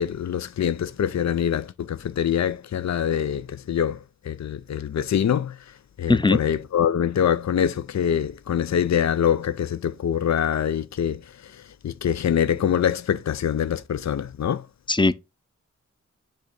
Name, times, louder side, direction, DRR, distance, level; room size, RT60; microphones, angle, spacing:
voice 1, 0.0-4.0 4.2-5.5 6.0-11.2 11.8-14.6, left 9 dB, 70° left, 0.5 m, -24 dB
voice 2, 6.1-6.4 14.9-15.1, left 3 dB, 15° left, 0.6 m, -18 dB
6.4 x 2.9 x 5.1 m
wide cardioid pair, 50°, 29 cm